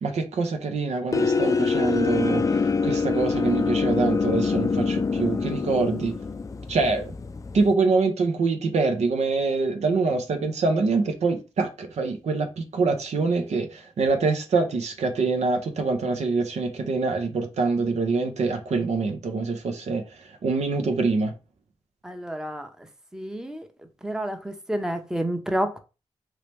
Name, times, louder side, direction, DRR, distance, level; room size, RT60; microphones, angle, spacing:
voice 1, 0.0-6.1 6.7-7.1 7.5-21.3, right 4 dB, 75° right, 0.7 m, -25 dB
sound 1, 1.1-7.7, left 4 dB, 30° left, 0.4 m, -25 dB
voice 2, 22.0-22.7 23.1-23.7 24.0-25.8, right 1 dB, 5° right, 0.7 m, -29 dB
3.1 x 2.9 x 3.3 m
cardioid pair, 50°, 12 cm